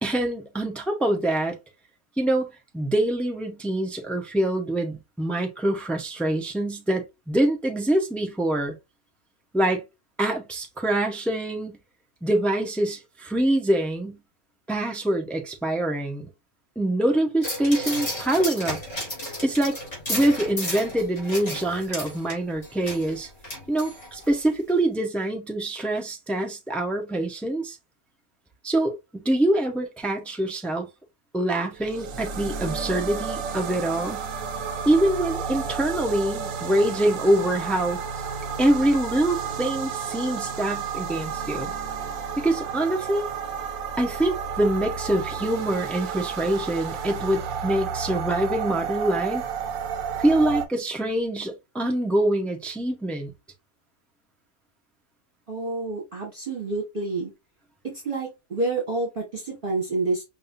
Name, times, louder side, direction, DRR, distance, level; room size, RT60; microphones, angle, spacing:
voice 1, 0.0-1.6 2.2-8.7 9.5-9.8 10.2-11.8 12.2-14.2 14.7-16.3 16.8-18.8 19.4-19.8 20.1-23.3 23.7-27.8 28.6-30.9 31.3-34.2 34.8-38.0 38.6-41.7 42.4-43.3 44.0-49.4 50.2-53.3, right 1 dB, ahead, 0.6 m, -25 dB
sound 1, 17.4-24.3 24.7-24.8, left 1 dB, 25° left, 2.4 m, -33 dB
sound 2, 31.7-50.6, right 6 dB, 70° right, 1.1 m, -32 dB
voice 2, 55.5-57.3 58.0-60.2, right 3 dB, 40° right, 1.5 m, -28 dB
5.4 x 2.6 x 2.6 m
omnidirectional pair, 1.5 m